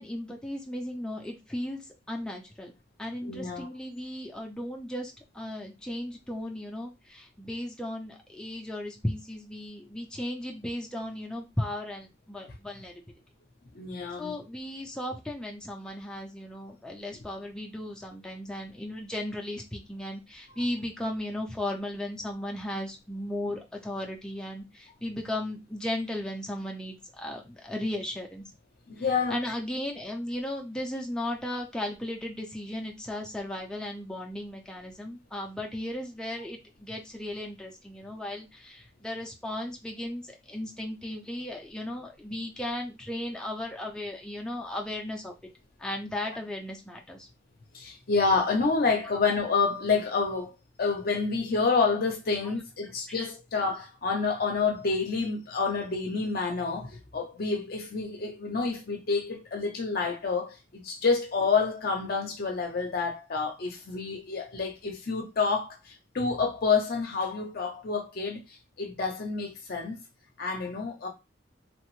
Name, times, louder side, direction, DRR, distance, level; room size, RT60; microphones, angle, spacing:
voice 1, 0.0-1.8 2.1-2.7 3.0-12.9 14.2-28.4 29.3-45.3 45.8-47.3 52.4-52.5 53.1-53.2, left 1 dB, 5° left, 0.4 m, -36 dB
voice 2, 3.2-3.7 13.7-14.3 28.9-29.4 47.7-70.0 70.4-71.1, left 4 dB, 55° left, 0.6 m, -28 dB
3.1 x 2.0 x 3.0 m
head